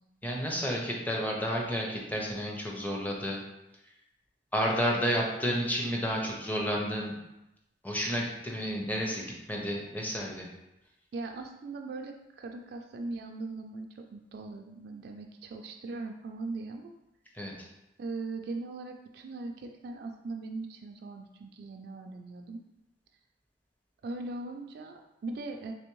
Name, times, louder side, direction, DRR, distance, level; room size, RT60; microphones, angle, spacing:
voice 1, 0.2-3.4 4.5-7.1 7.8-10.5 17.3-17.7, equal, 10° left, -1 dB, 0.6 m, -31 dB
voice 2, 11.1-16.9 17.4-17.6 18.0-22.6 24.0-25.7, right 3 dB, 60° right, 3 dB, 0.3 m, -40 dB
3.4 x 3.3 x 3.0 m, 0.91 s
head